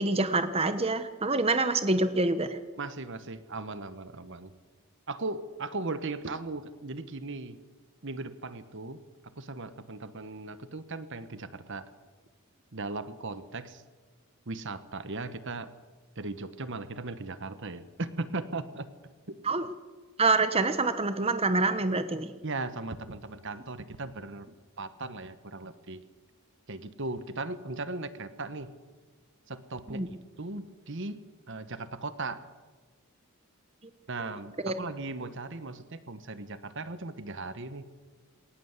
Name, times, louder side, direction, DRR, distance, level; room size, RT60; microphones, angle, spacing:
voice 1, 0.0-2.6 19.4-19.7 20.2-22.3 29.9-30.1 34.6-34.7, right 3 dB, 25° right, 10 dB, 1.1 m, -26 dB
voice 2, 2.8-4.5 5.1-7.6 8.0-9.0 9.4-11.9 12.7-13.8 14.5-15.7 16.2-18.9 22.4-24.5 24.8-26.0 26.7-28.7 29.5-30.0 30.4-31.2 31.5-32.5 34.1-37.8, right 3 dB, 55° right, 12 dB, 1.2 m, -37 dB
20.5 x 18.5 x 8.2 m, 1.4 s
head